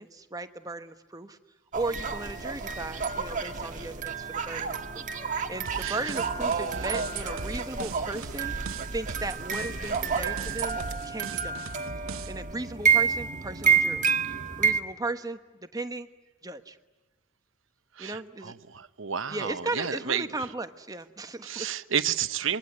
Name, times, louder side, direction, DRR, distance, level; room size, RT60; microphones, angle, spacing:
voice 1, 0.0-1.4 1.7-11.6 12.3-14.0 14.6-16.1 16.4-16.8 18.0-18.5 19.3-21.7, right 2 dB, 20° right, 9 dB, 1.2 m, -36 dB
sound 1, 1.7-14.8, right 6 dB, 40° right, 1.6 m, -29 dB
sound 2, 5.7-12.5, right 4 dB, 90° right, 1.0 m, -40 dB
voice 2, 18.0-20.3 21.4-22.6, right 8 dB, 65° right, 13 dB, 0.9 m, -31 dB
26.0 x 22.5 x 9.6 m, 1.2 s
head